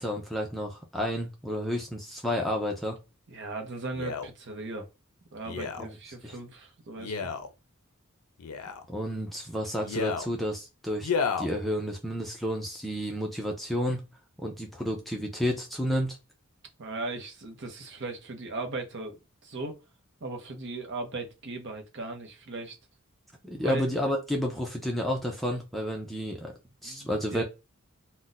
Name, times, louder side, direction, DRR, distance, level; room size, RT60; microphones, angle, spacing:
voice 1, 0.0-3.0 5.8-5.9 6.2-6.4 8.9-11.1 11.4-14.0 14.4-16.2 23.4-26.5 26.8-27.4, equal, ahead, 0.4 m, -31 dB
voice 2, 3.3-4.9 5.3-7.3 16.8-19.8 20.2-22.8 23.5-23.8 26.8-27.4, right 2 dB, 55° right, 0.7 m, -38 dB
Male speech man speaking, 3.9-4.3 5.4-5.9 7.0-7.5 8.4-8.9 9.8-10.3 11.0-11.5 12.2-12.3, left 5 dB, 85° left, 0.5 m, -31 dB
2.5 x 2.2 x 3.9 m
head